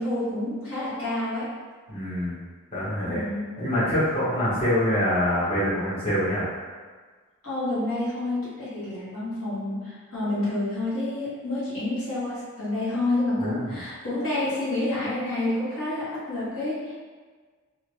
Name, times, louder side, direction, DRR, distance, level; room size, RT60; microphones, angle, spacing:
voice 1, 0.0-1.5 3.0-3.5 7.4-16.9, left 2 dB, 70° left, -10 dB, 1.3 m, -28 dB
voice 2, 1.9-2.4 2.7-3.2 3.6-6.4 13.4-13.7, equal, 25° left, -13 dB, 0.9 m, -25 dB
2.7 x 2.5 x 3.0 m, 1.5 s
head